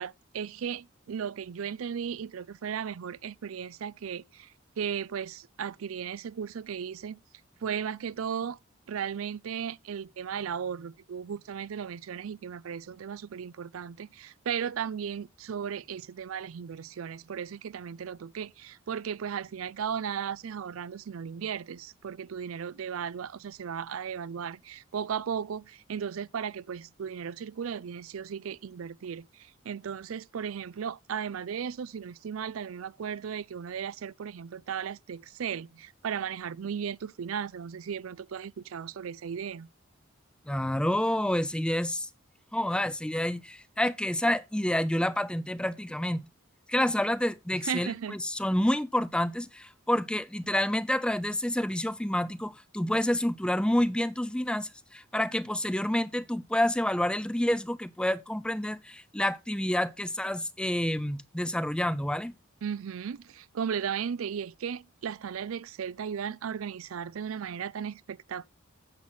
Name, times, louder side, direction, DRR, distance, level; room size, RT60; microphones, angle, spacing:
voice 1, 0.0-7.2 7.6-8.6 8.9-39.7 47.7-48.2 62.6-68.5, right 7 dB, 85° right, 0.4 m, -36 dB
voice 2, 40.5-42.1 42.5-46.3 46.7-62.3, left 1 dB, 5° left, 0.4 m, -28 dB
10.5 x 7.3 x 4.0 m
head